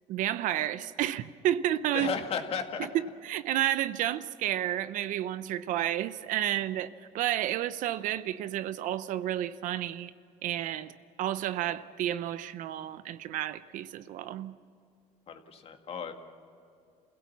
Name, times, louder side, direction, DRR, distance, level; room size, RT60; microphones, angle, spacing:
voice 1, 0.1-2.1 2.9-10.1 10.4-14.6, right 12 dB, 70° right, 0.8 m, -31 dB
voice 2, 1.9-2.9 15.3-16.1, left 6 dB, 45° left, 2.1 m, -34 dB
28.0 x 16.5 x 7.3 m
cardioid pair, 125°, 14 cm